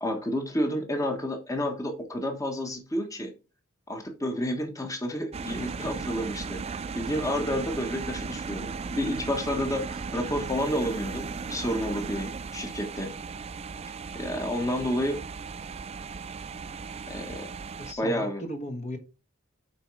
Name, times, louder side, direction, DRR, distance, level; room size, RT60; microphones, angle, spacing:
voice 1, 0.0-3.3 3.9-13.1 14.1-15.2 17.1-17.5 18.0-18.4, equal, 15° left, 1.4 m, -30 dB
sound 1, 5.3-17.9, right 5 dB, 30° right, 0.4 m, -36 dB
voice 2, 10.1-10.4 17.8-19.0, equal, 35° left, 1.4 m, -37 dB
8.9 x 4.5 x 4.8 m
head